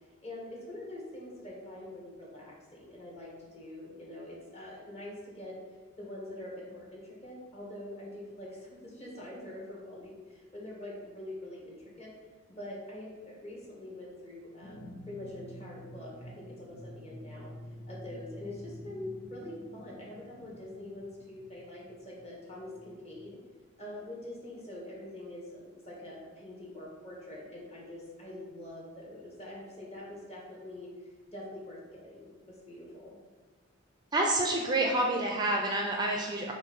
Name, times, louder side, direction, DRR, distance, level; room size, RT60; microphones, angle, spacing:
voice 1, 0.2-5.6 6.0-12.1 12.5-17.5 17.9-23.4 23.8-30.9 31.3-33.2, left 1 dB, 35° left, -4 dB, 1.7 m, -44 dB
sound 1, 14.6-23.0, equal, 80° left, 1.3 m, -49 dB
voice 2, 34.1-36.5, right 2 dB, 20° right, 0 dB, 0.5 m, -28 dB
7.1 x 2.6 x 5.7 m, 1.4 s
head